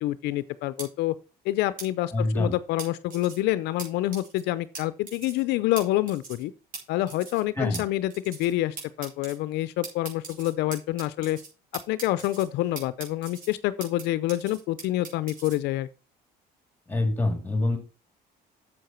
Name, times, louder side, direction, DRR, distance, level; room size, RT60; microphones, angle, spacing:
voice 1, 0.0-1.1 1.4-6.5 6.9-11.4 11.9-15.9, left 15 dB, 85° left, 0.6 m, -27 dB
sound 1, 0.8-0.9 1.8-1.9 2.8-3.4 3.8-3.9 4.1-4.4 4.7-4.8 5.1-5.4 5.8-5.9 6.1-6.4 6.7-6.8 7.1-7.4 7.7-7.8 8.1-8.5 8.8-9.3 9.8-11.5 11.7-12.4 12.8-14.0 14.3-15.6, right 4 dB, 55° right, 5.1 m, -40 dB
voice 2, 2.1-2.6 7.6-7.8 16.9-17.8, left 2 dB, 10° left, 3.1 m, -25 dB
7.9 x 7.5 x 4.5 m
cardioid pair, 110°, 17 cm